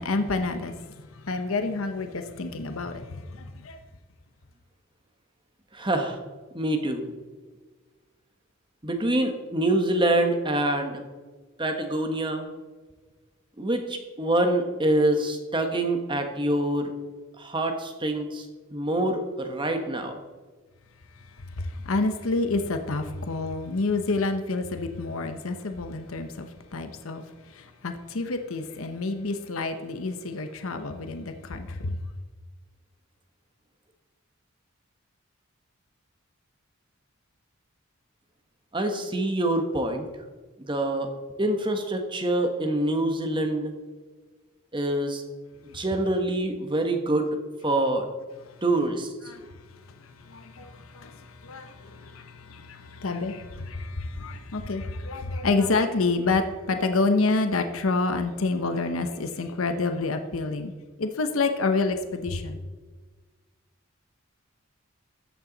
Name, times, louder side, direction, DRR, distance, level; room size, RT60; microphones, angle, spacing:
voice 1, 0.0-3.8 21.6-27.2 27.5-32.0 49.3-49.4 50.0-60.7 61.0-62.6, left 3 dB, 75° left, 0.8 m, -28 dB
voice 2, 5.7-6.2 6.5-7.0 8.8-11.0 11.6-12.5 13.6-16.9 17.4-20.2 38.7-40.1 40.6-41.1 41.4-43.7 44.7-45.2 45.6-48.1 48.6-49.1, right 1 dB, 20° right, 1.2 m, -26 dB
13.5 x 8.8 x 4.0 m
head